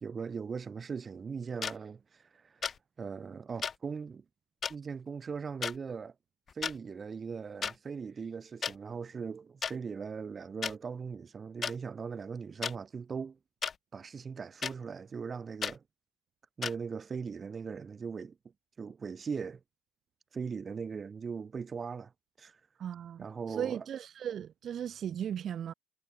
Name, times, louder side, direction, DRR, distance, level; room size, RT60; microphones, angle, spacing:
voice 1, 0.0-4.2 4.7-6.1 6.5-13.4 13.9-15.8 16.6-18.4 18.8-19.6 20.3-22.1 22.4-22.6 23.2-23.9, right 5 dB, 30° right, 1.9 m, -39 dB
sound 1, 1.6-1.7 2.6-2.8 3.6-3.7 4.6-4.7 5.6-5.8 6.5-6.8 7.6-7.7 8.6-8.7 9.6-9.7 10.6-10.7 11.6-11.7 12.6-12.8 13.6-13.8 14.6-14.7 15.6-15.8 16.6-16.7, left 6 dB, 35° left, 3.0 m, -33 dB
voice 2, 22.8-23.3 23.6-25.7, right 9 dB, 45° right, 2.1 m, -36 dB
cardioid pair, 105°, 0 cm